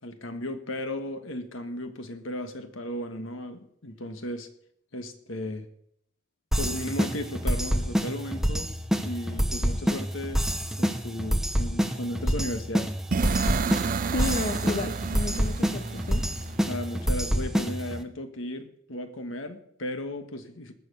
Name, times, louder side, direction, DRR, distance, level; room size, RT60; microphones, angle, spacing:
voice 1, 0.0-4.5 4.9-5.7 6.5-8.7 9.0-10.4 10.8-12.9 16.7-20.7, left 1 dB, 75° left, 8 dB, 1.5 m, -35 dB
sound 1, 6.5-18.0, equal, ahead, 0.8 m, -27 dB
sound 2, 13.1-17.0, right 5 dB, 45° right, 0.4 m, -31 dB
voice 2, 14.1-16.3, left 2 dB, 45° left, 8 dB, 0.7 m, -32 dB
19.5 x 7.1 x 5.5 m, 0.71 s
head